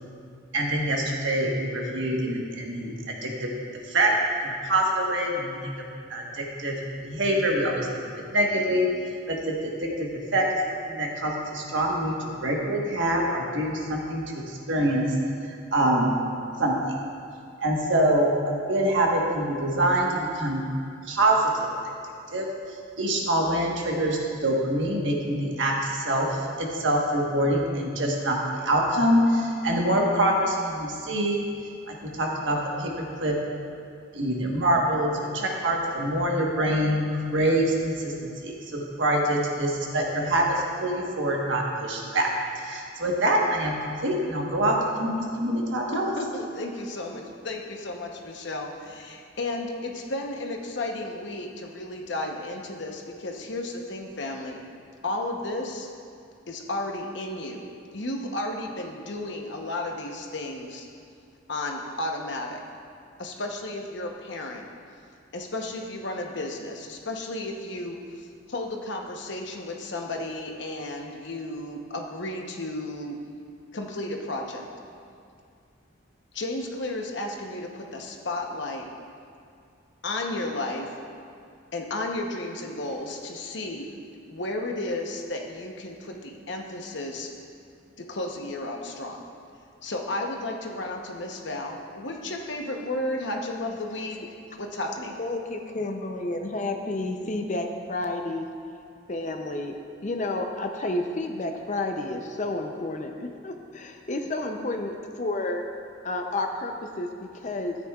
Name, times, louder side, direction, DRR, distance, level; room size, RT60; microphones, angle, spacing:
voice 1, 0.5-3.5 3.8-4.1 4.4-5.8 6.1-7.9 8.3-8.9 9.3-14.2 14.5-15.1 15.7-16.1 16.6-17.0 17.6-20.6 21.0-21.7 22.3-22.5 23.0-31.4 31.9-33.3 34.1-38.1 38.4-46.1, right 1 dB, 70° right, -1 dB, 1.3 m, -25 dB
voice 2, 45.9-54.6 55.0-55.9 56.5-57.6 57.9-60.9 61.5-62.6 63.2-64.6 65.3-73.2 73.7-74.7 76.3-78.9 80.0-80.9 81.7-83.9 84.3-87.3 88.1-89.3 89.8-94.2 94.6-95.2, left 2 dB, 60° left, 1 dB, 0.9 m, -33 dB
voice 3, 95.2-98.5 99.1-105.6 106.0-107.8, left 2 dB, 35° left, 4 dB, 0.6 m, -31 dB
13.0 x 9.1 x 2.4 m, 2.4 s
head